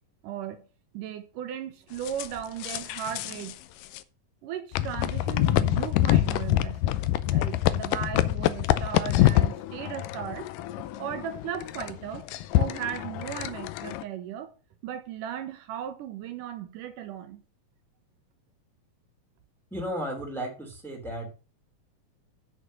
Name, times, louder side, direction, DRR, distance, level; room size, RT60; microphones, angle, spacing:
voice 1, 0.2-0.6 0.9-3.6 4.4-6.9 7.2-10.5 10.8-12.3 12.6-14.5 14.8-17.4, right 10 dB, 80° right, 2.4 m, -36 dB
sound 1, 2.1-3.5 3.8-4.0 4.7-14.0, left 14 dB, 80° left, 2.2 m, -26 dB
voice 2, 19.7-21.3, equal, ahead, 2.1 m, -34 dB
7.6 x 6.6 x 6.2 m
omnidirectional pair, 3.9 m